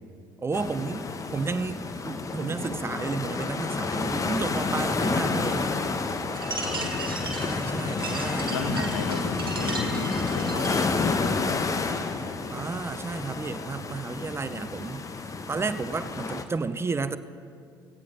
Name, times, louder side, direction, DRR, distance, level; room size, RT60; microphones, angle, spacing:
voice 1, 0.4-1.1 1.3-5.7 7.4-8.8 12.5-15.0 15.5-17.2, right 4 dB, 20° right, 13 dB, 0.6 m, -32 dB
sound 1, 0.5-16.4, left 4 dB, 30° left, 1.1 m, -30 dB
sound 2, 6.3-10.9, right 3 dB, 90° right, 1.5 m, -36 dB
voice 2, 6.6-7.2 8.5-12.2, left 4 dB, 80° left, 6 dB, 1.2 m, -36 dB
17.0 x 16.0 x 3.9 m, 2.3 s
figure-of-eight pair, 55°, 12 cm